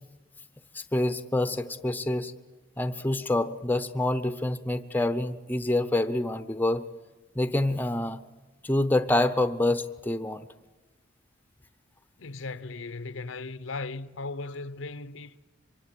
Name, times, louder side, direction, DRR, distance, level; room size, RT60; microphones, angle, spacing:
voice 1, 0.7-2.3 2.8-6.9 7.4-8.2 8.6-10.5, left 1 dB, 10° left, 0.8 m, -27 dB
voice 2, 12.2-15.4, left 3 dB, 70° left, 0.8 m, -37 dB
24.5 x 23.5 x 8.7 m
head